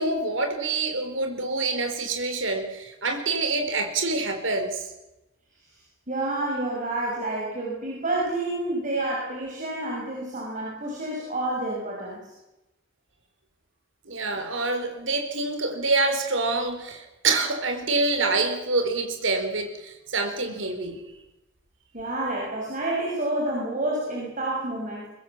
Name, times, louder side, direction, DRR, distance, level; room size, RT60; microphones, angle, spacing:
voice 1, 0.0-4.8 14.1-21.0, right 3 dB, 75° right, 6 dB, 4.5 m, -26 dB
voice 2, 6.1-12.3 21.9-25.1, right 2 dB, 40° right, -3 dB, 6.3 m, -29 dB
23.5 x 20.5 x 7.4 m, 0.98 s
head